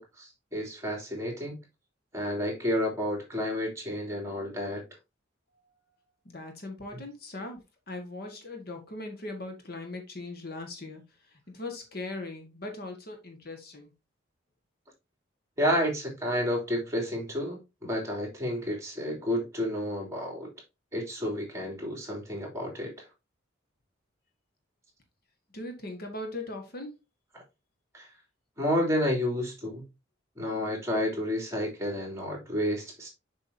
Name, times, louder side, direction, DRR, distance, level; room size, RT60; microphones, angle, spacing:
voice 1, 0.0-1.6 2.1-4.8 6.9-7.0 15.6-20.5 20.9-22.9 27.9-28.1 28.6-29.8 30.4-33.1, equal, 15° right, 3.1 m, -30 dB
voice 2, 6.2-13.9 25.5-26.9, left 2 dB, 50° left, 1.7 m, -40 dB
7.1 x 6.1 x 2.8 m
head